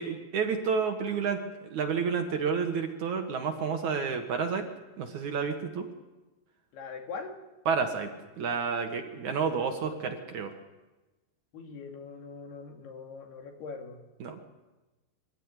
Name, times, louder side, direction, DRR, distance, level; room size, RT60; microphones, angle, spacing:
voice 1, 0.0-1.4 1.7-4.7 5.0-5.9 7.7-8.1 8.4-10.5 14.2-14.4, right 6 dB, 55° right, 5 dB, 2.5 m, -30 dB
voice 2, 6.7-7.4 11.5-14.0, left 4 dB, 80° left, 3 dB, 4.6 m, -42 dB
24.5 x 15.5 x 9.9 m, 1.1 s
omnidirectional pair, 4.6 m